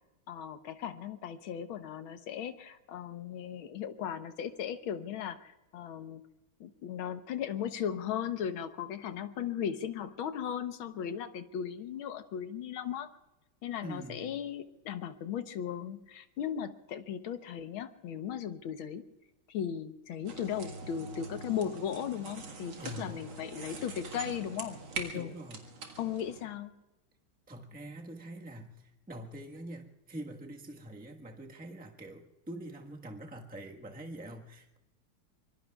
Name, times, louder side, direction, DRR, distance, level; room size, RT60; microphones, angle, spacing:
voice 1, 0.3-6.2 6.6-13.1 13.6-19.0 19.5-25.3 26.0-26.7, left 9 dB, 75° left, 9 dB, 1.8 m, -37 dB
voice 2, 13.8-14.3 22.8-23.3 25.1-25.7 27.5-34.8, right 1 dB, 5° right, 1 dB, 1.1 m, -45 dB
sound 1, 20.2-26.4, right 4 dB, 70° right, 2.6 m, -44 dB
25.0 x 24.5 x 2.4 m, 0.99 s
omnidirectional pair, 2.3 m